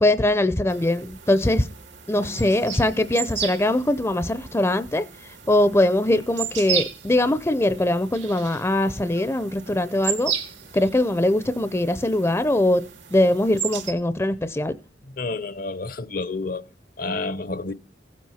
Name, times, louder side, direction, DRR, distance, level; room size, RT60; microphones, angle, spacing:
voice 1, 0.0-1.7 2.1-5.0 5.5-10.3 10.7-12.8 13.1-14.7, left 1 dB, 15° left, 0.6 m, -21 dB
sound 1, 0.7-13.9, right 8 dB, 85° right, 2.2 m, -35 dB
voice 2, 15.2-16.6 17.0-17.7, left 3 dB, 50° left, 0.7 m, -29 dB
16.0 x 7.5 x 5.7 m
head